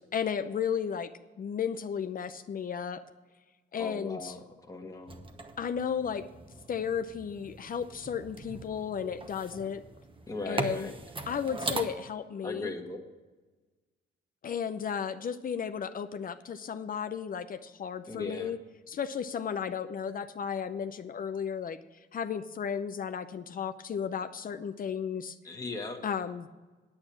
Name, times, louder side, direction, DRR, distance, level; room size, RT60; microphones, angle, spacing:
voice 1, 0.1-1.1 1.4-3.0 3.7-4.3 5.6-6.2 6.7-9.8 10.5-10.9 11.3-12.7 14.4-18.6 18.9-21.8 22.1-25.4 26.0-26.5, left 7 dB, 45° left, 10 dB, 0.6 m, -34 dB
voice 2, 3.8-5.2 10.3-10.9 12.4-13.0 18.1-18.5 25.4-26.0, left 2 dB, 15° left, 2 dB, 1.5 m, -38 dB
sound 1, 5.1-11.8, right 3 dB, 25° right, 1.1 m, -40 dB
8.8 x 8.8 x 6.1 m, 1.3 s
cardioid pair, 90°, 20 cm